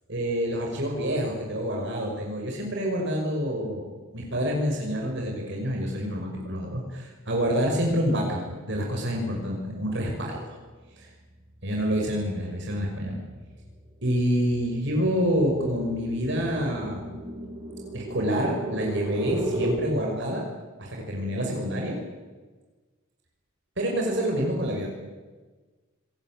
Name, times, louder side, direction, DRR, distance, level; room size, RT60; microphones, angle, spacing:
voice 1, 0.1-10.6 11.0-11.1 11.6-13.2 14.0-17.1 17.9-20.4 20.8-22.0 23.8-24.9, equal, 55° right, 0 dB, 5.6 m, -27 dB
sound 1, 10.8-19.8, right 1 dB, 20° right, 4.4 m, -36 dB
27.0 x 20.0 x 9.0 m, 1.3 s
head